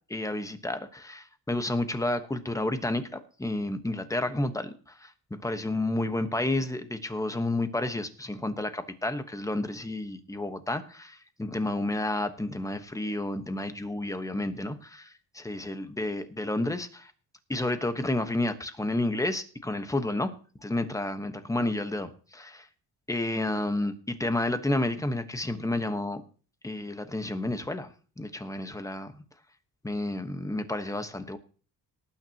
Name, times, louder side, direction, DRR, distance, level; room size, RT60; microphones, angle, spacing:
voice 1, 0.1-17.1 17.5-20.3 20.6-22.7 23.1-26.2 26.6-29.2 29.8-31.4, left 2 dB, 10° left, 9 dB, 1.2 m, -31 dB
19.0 x 9.2 x 2.9 m, 0.39 s
cardioid pair, 125°, 37 cm